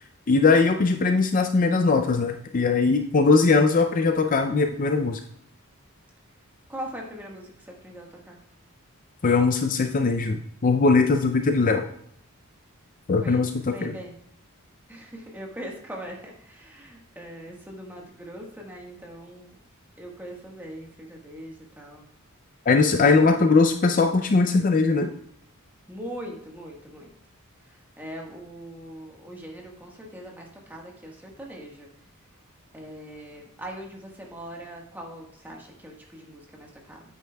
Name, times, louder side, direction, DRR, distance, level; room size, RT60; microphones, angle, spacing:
voice 1, 0.3-5.2 9.2-11.8 13.1-13.9 22.7-25.1, left 4 dB, 40° left, 6 dB, 0.4 m, -20 dB
voice 2, 6.7-8.4 13.2-13.4 13.7-14.1 14.9-19.6 20.0-22.1 23.2-23.6 25.9-27.1 27.6-31.9 32.7-37.0, right 1 dB, 10° right, -1 dB, 1.4 m, -41 dB
9.3 x 8.4 x 2.3 m, 0.68 s
head